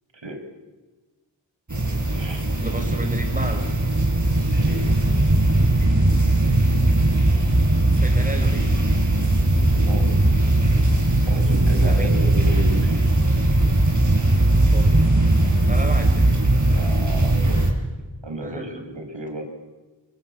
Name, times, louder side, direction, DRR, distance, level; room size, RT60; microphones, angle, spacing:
sound 1, 1.7-17.7, right 1 dB, 40° right, 5.7 m, -19 dB
voice 1, 2.1-2.5 4.5-4.8 9.7-10.1 11.2-13.0 15.6-16.0 16.6-17.6 18.2-19.4, right 2 dB, 70° right, 4 dB, 5.2 m, -33 dB
voice 2, 2.6-3.6 8.0-8.8 11.8-12.1 14.5-15.1 15.7-16.2 18.4-18.9, right 1 dB, 15° right, 5 dB, 4.8 m, -32 dB
28.0 x 24.5 x 8.6 m, 1.3 s
wide cardioid pair, 50°, 46 cm